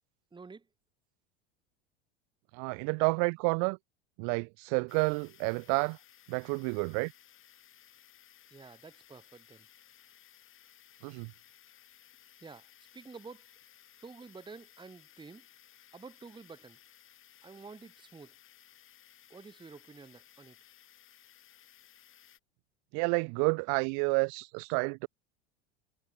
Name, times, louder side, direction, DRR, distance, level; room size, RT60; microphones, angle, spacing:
voice 1, 0.3-0.7 8.5-9.7 12.4-12.7 12.9-13.5 14.0-15.5 15.9-16.8 17.4-18.3 19.3-20.6, right 4 dB, 15° right, 1.6 m, -50 dB
voice 2, 2.5-3.8 4.2-6.0 6.3-7.1 11.0-11.3 22.9-25.1, right 40 dB or more, 60° right, 0.9 m, -30 dB
sound 1, 4.9-22.4, left 10 dB, 35° left, 3.2 m, -59 dB
hypercardioid pair, 90°, 34 cm